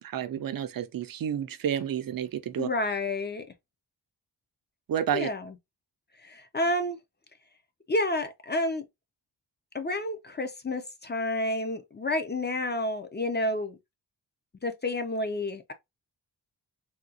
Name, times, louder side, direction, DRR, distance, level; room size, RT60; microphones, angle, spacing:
voice 1, 0.0-2.7 4.9-5.3, right 9 dB, 55° right, 0.5 m, -30 dB
voice 2, 2.6-3.5 5.1-5.5 6.2-7.0 7.9-8.9 9.7-13.8 14.6-15.7, left 1 dB, 25° left, 0.5 m, -30 dB
3.6 x 2.3 x 2.6 m
wide cardioid pair, 120°, 43 cm